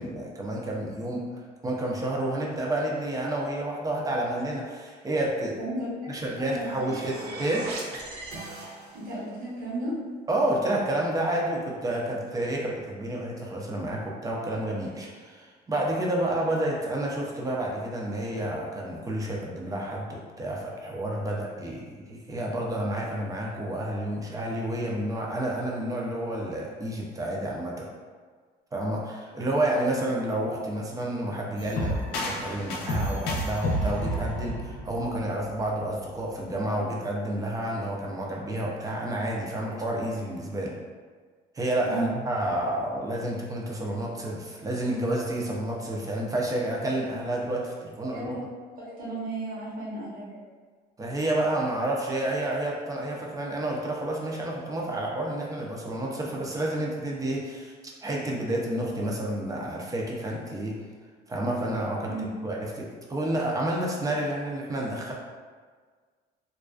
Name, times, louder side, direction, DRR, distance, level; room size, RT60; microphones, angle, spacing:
voice 1, 0.0-1.3 1.6-5.6 6.1-8.0 10.3-27.9 28.7-40.8 41.5-48.4 51.0-60.8 61.3-65.1, right 1 dB, 20° right, -2 dB, 0.5 m, -30 dB
voice 2, 5.6-5.9 6.3-6.9 8.9-10.0 41.8-42.1 48.1-48.4 48.8-50.2 62.1-62.2, right 2 dB, 55° right, -9 dB, 1.0 m, -34 dB
sound 1, 6.2-9.2, right 2 dB, 85° right, 0.5 m, -39 dB
sound 2, 31.6-35.5, equal, 75° left, 0.5 m, -30 dB
2.4 x 2.2 x 2.3 m, 1.5 s
cardioid pair, 110°, 17 cm